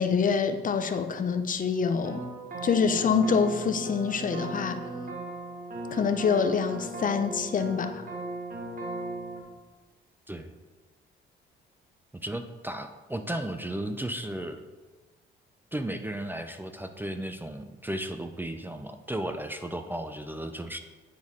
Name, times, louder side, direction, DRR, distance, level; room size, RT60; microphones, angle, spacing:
voice 1, 0.0-2.2 2.6-4.8 5.9-8.0, left 6 dB, 45° left, 9 dB, 0.5 m, -26 dB
sound 1, 2.0-9.4, right 2 dB, 45° right, 1.3 m, -37 dB
voice 2, 12.2-14.6 15.7-20.8, right 1 dB, 10° right, 7 dB, 0.4 m, -34 dB
9.5 x 4.4 x 3.6 m, 1.3 s
cardioid pair, 90°, 20 cm